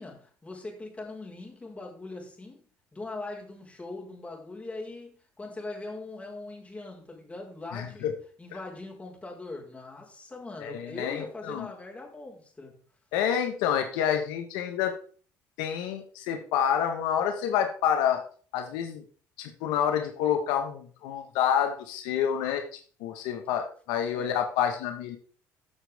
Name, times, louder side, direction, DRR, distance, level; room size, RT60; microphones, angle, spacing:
voice 1, 0.0-2.6 2.9-8.1 8.4-12.8 24.1-24.4, left 2 dB, 20° left, -1 dB, 4.6 m, -41 dB
voice 2, 7.7-8.1 10.6-11.7 13.1-14.9 15.6-18.2 18.5-19.0 19.4-22.6 23.0-25.2, left 9 dB, 85° left, 6 dB, 1.4 m, -28 dB
14.5 x 6.3 x 3.5 m, 0.43 s
supercardioid pair, 90°, 7 cm